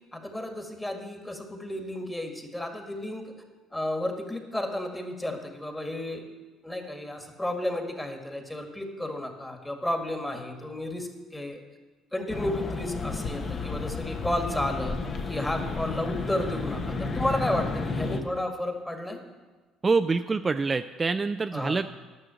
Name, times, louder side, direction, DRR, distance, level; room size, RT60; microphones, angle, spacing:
voice 1, 0.1-3.3 3.7-6.2 6.6-11.6 12.1-15.0 15.3-19.2 21.5-21.9, left 1 dB, 10° left, 4 dB, 1.9 m, -32 dB
sound 1, 12.3-18.2, left 3 dB, 45° left, 1.1 m, -32 dB
voice 2, 19.8-21.9, right 4 dB, 30° right, 9 dB, 0.4 m, -26 dB
11.0 x 6.3 x 7.0 m, 1.3 s
hypercardioid pair, 60°, 0 cm